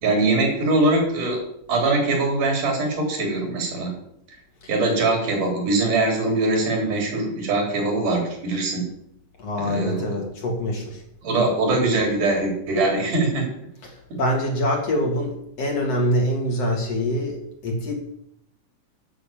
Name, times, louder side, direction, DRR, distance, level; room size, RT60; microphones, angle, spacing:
voice 1, 0.0-1.4 1.7-3.9 4.7-8.9 9.6-10.0 11.2-13.5, right 2 dB, 75° right, 1 dB, 5.0 m, -22 dB
voice 2, 9.4-11.0 13.8-17.9, equal, 50° left, 0 dB, 3.3 m, -25 dB
9.9 x 6.3 x 8.6 m, 0.74 s
omnidirectional pair, 3.7 m